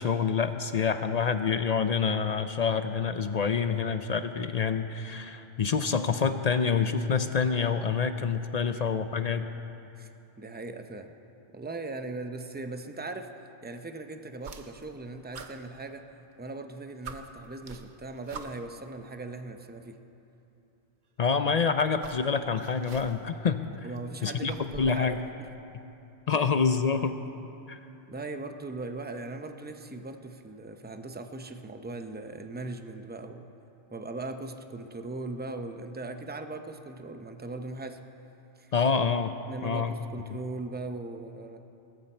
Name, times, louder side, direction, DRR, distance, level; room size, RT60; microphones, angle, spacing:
voice 1, 0.0-9.5 21.2-23.6 24.2-25.2 26.3-27.2 27.7-27.8 38.7-39.3 39.6-39.9 40.3-40.4, left 6 dB, 50° left, 9 dB, 0.5 m, -27 dB
voice 2, 8.6-8.9 10.0-10.1 10.4-11.1 11.5-13.3 13.6-16.1 16.4-20.0 23.8-25.5 26.3-26.4 28.1-33.5 33.9-38.0 38.6-38.7 39.5-41.6, right 2 dB, 10° right, 7 dB, 0.5 m, -39 dB
sound 1, 14.4-15.0 15.3-16.4 16.7-16.8 17.0-18.8 19.8-19.9 21.3-23.4 23.7-25.1, right 5 dB, 50° right, 0.8 m, -46 dB
19.5 x 13.5 x 4.4 m, 2.9 s
omnidirectional pair, 1.1 m